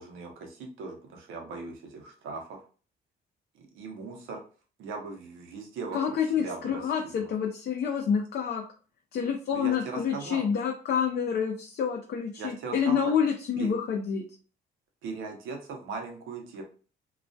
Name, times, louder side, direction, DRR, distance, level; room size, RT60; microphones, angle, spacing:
voice 1, 0.0-2.6 3.5-4.4 4.8-6.9 7.1-7.3 9.5-10.4 12.4-13.1 13.6-13.7 15.0-16.6, right 4 dB, 90° right, 1 dB, 0.7 m, -39 dB
voice 2, 5.9-8.6 9.1-14.2, left 7 dB, 55° left, 1 dB, 0.4 m, -28 dB
2.3 x 2.1 x 2.5 m, 0.39 s
cardioid pair, 90°, 20 cm